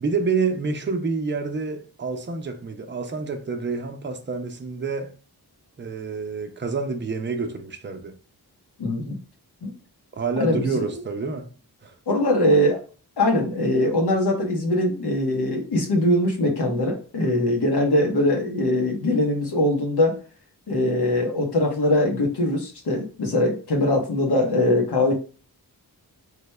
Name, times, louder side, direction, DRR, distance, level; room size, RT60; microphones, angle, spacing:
voice 1, 0.0-5.1 5.8-8.1 10.1-11.5 11.8-12.0, right 4 dB, 30° right, 0.5 m, -28 dB
voice 2, 8.8-9.2 9.6-9.7 10.4-11.0 12.1-12.8 13.2-20.1 20.7-25.1, left 1 dB, 75° left, 0.9 m, -22 dB
3.2 x 2.1 x 3.1 m
cardioid pair, 45°, 40 cm